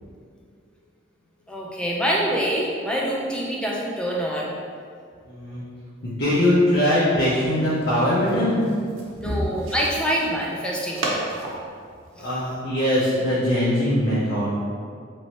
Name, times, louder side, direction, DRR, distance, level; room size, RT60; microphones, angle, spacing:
voice 1, 1.5-4.5 9.2-11.1 12.2-12.3, equal, 5° left, -3 dB, 0.4 m, -25 dB
voice 2, 5.3-5.6 6.0-8.6 12.2-14.5, left 1 dB, 55° left, -11 dB, 0.8 m, -21 dB
sound 1, 7.4-12.9, right 2 dB, 80° right, 0.6 m, -35 dB
3.1 x 2.8 x 4.1 m, 2.2 s
head